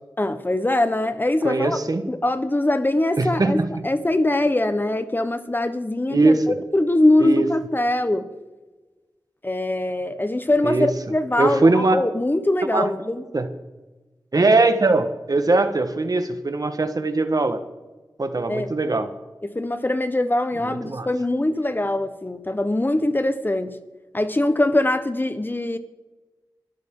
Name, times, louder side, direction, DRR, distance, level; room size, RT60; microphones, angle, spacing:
voice 1, 0.2-1.8 2.1-3.6 3.8-8.3 9.4-13.2 18.5-18.7 19.4-23.8 24.1-25.8, left 1 dB, 25° left, 10 dB, 1.1 m, -22 dB
voice 2, 1.4-2.1 3.2-3.9 6.1-6.5 7.2-7.5 10.6-10.9 11.4-12.0 12.7-12.9 13.3-13.5 14.3-17.6 18.2-19.1 20.6-21.1, right 3 dB, 55° right, 8 dB, 1.5 m, -20 dB
23.5 x 13.5 x 3.9 m, 1.2 s
wide cardioid pair, 55°, 8 cm